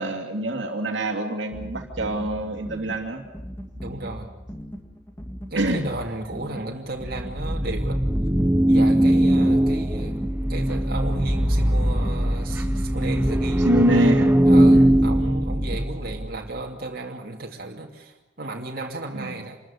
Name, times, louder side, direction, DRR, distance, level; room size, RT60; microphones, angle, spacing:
voice 1, 0.0-3.2 5.5-5.8 13.6-14.3 14.7-14.9 19.1-19.4, right 1 dB, 70° right, 3 dB, 2.7 m, -25 dB
sound 1, 1.5-16.2, equal, 10° left, 2.2 m, -38 dB
voice 2, 3.8-4.3 5.5-8.0 8.7-10.2 10.5-13.7 14.5-19.6, right 2 dB, 50° right, 0 dB, 2.7 m, -34 dB
Dub Techno Loop, 7.0-16.4, right 1 dB, 10° right, 0.8 m, -20 dB
27.0 x 14.0 x 10.0 m, 0.96 s
head